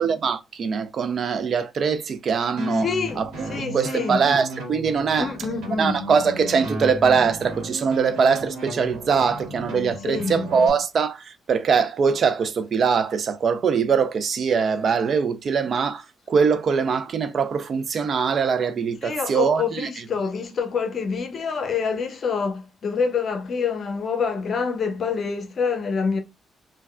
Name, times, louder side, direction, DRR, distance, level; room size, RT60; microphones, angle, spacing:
voice 1, 0.0-2.9 3.2-5.3 5.8-19.9, right 6 dB, 55° right, 0.4 m, -22 dB
sound 1, 2.6-10.7, equal, 75° right, 1.1 m, -34 dB
voice 2, 2.7-4.2 5.2-6.1 10.0-10.5 19.0-26.2, left 5 dB, 50° left, 0.7 m, -26 dB
3.5 x 2.2 x 2.2 m
cardioid pair, 90°, 0 cm